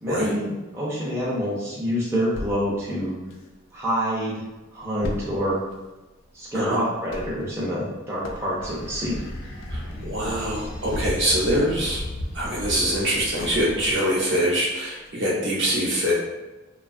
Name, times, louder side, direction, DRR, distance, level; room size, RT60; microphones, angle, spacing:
voice 1, 0.0-3.2 3.7-4.4 4.7-5.6 6.3-9.2, equal, 10° right, -7 dB, 0.4 m, -27 dB
sound 1, 2.4-3.9 4.3-4.4 4.6-11.6 12.0-14.1 14.6-14.7 15.1-15.2, left 1 dB, 60° left, 0.3 m, -37 dB
sound 2, 8.6-14.0, left 1 dB, 80° left, 0.7 m, -34 dB
voice 2, 9.7-12.0 12.3-16.1, equal, 55° right, -4 dB, 0.7 m, -24 dB
2.6 x 2.2 x 2.4 m, 1.1 s
head